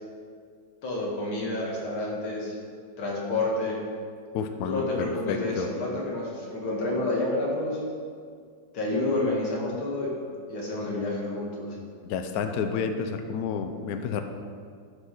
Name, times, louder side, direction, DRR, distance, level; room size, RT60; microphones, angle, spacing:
voice 1, 0.8-2.5 3.0-3.8 4.7-7.8 8.7-10.2 10.5-11.8, left 2 dB, 90° left, -3 dB, 2.8 m, -29 dB
voice 2, 4.3-5.7 12.0-14.2, left 6 dB, 65° left, 7 dB, 1.0 m, -30 dB
12.0 x 6.5 x 4.8 m, 2.1 s
omnidirectional pair, 2.2 m